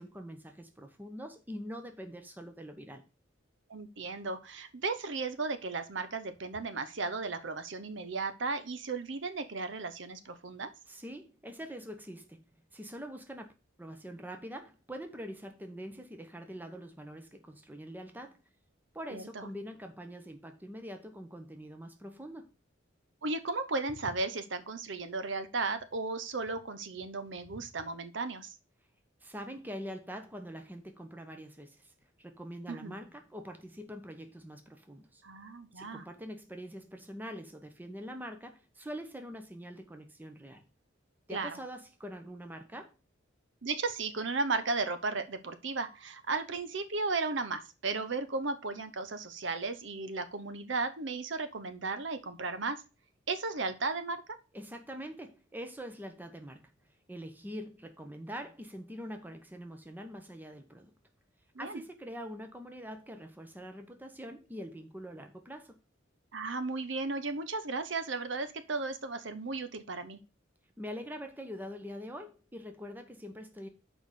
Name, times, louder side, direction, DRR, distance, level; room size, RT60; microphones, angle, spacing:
voice 1, 0.0-3.0 10.9-12.4 12.7-13.5 13.8-18.4 18.9-22.5 29.2-35.2 35.7-40.6 41.3-42.9 54.5-56.7 57.1-60.9 61.6-65.8 70.8-73.7, equal, 10° right, 0.9 m, -44 dB
voice 2, 3.7-10.7 19.1-19.5 23.2-28.6 32.7-33.0 35.2-36.0 41.3-41.6 43.6-52.8 53.3-54.2 61.5-61.8 66.3-70.2, right 3 dB, 65° right, 0.8 m, -35 dB
6.3 x 5.0 x 6.5 m
head